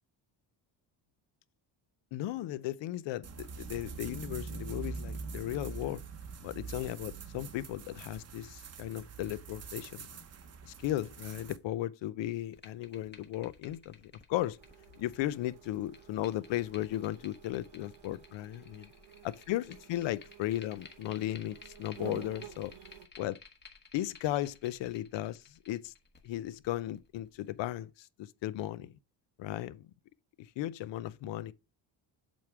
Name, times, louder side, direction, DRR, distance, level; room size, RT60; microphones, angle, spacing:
voice 1, 2.1-6.0 6.4-10.1 10.6-14.0 14.3-14.6 15.0-18.8 19.2-22.7 23.2-23.4 23.9-25.9 26.2-28.9 29.4-29.8 30.4-31.5, left 14 dB, 70° left, 0.6 m, -36 dB
sound 1, 3.2-11.6, right 5 dB, 35° right, 0.7 m, -44 dB
sound 2, 12.4-27.7, left 4 dB, 20° left, 1.1 m, -56 dB
sound 3, 14.6-23.1, right 10 dB, 70° right, 1.1 m, -52 dB
7.7 x 3.6 x 4.7 m
cardioid pair, 145°, 46 cm